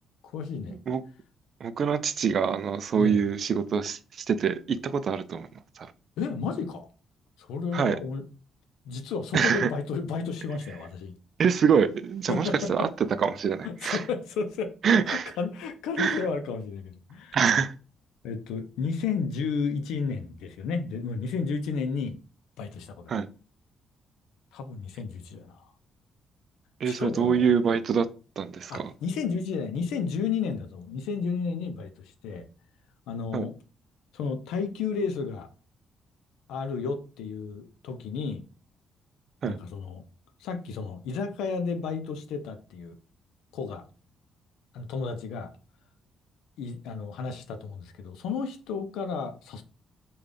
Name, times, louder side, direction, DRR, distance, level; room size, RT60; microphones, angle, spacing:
voice 1, 0.3-0.8 3.0-3.2 6.2-6.9 7.4-8.2 8.8-11.1 12.3-12.6 13.6-14.7 15.1-17.4 18.2-22.2 22.6-23.1 24.5-25.7 26.9-27.5 28.7-32.5 33.1-33.5 34.1-35.5 36.5-38.4 39.4-40.0 40.4-42.9 43.5-43.8 44.7-45.5 46.6-49.6, left 5 dB, 90° left, 0.4 m, -32 dB
voice 2, 1.6-5.5 5.8-5.9 7.7-8.0 9.3-9.7 11.4-12.9 13.2-14.0 14.8-15.3 16.0-16.2 17.3-17.7 23.1-23.3 26.8-28.1 28.4-28.9 33.3-33.5 39.4-39.6, right 6 dB, 55° right, 0.3 m, -25 dB
3.7 x 2.2 x 3.3 m
cardioid pair, 90°, 0 cm